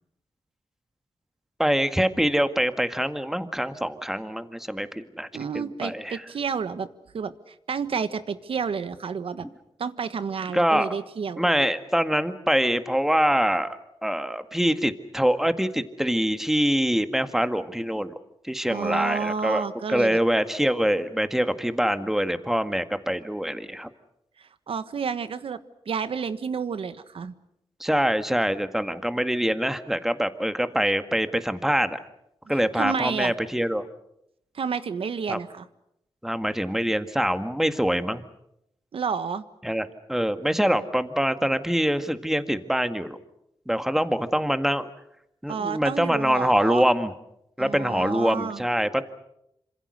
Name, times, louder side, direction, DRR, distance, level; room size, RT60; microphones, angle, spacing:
voice 1, 1.6-5.3 5.5-6.2 9.4-9.5 10.5-10.9 11.4-18.1 18.4-19.6 19.9-23.9 27.8-32.0 32.5-33.9 35.3-35.4 36.2-38.2 39.6-43.2 43.7-44.9 45.4-47.1 47.6-49.0, equal, 5° right, 9 dB, 1.8 m, -24 dB
voice 2, 5.3-6.9 7.1-9.5 9.8-11.4 18.7-20.2 24.4-25.6 25.8-27.3 32.7-33.3 34.5-35.6 38.9-39.4 45.5-46.8 47.6-48.6, right 6 dB, 75° right, 12 dB, 1.4 m, -30 dB
27.5 x 26.0 x 6.5 m, 0.79 s
wide cardioid pair, 85°, 10 cm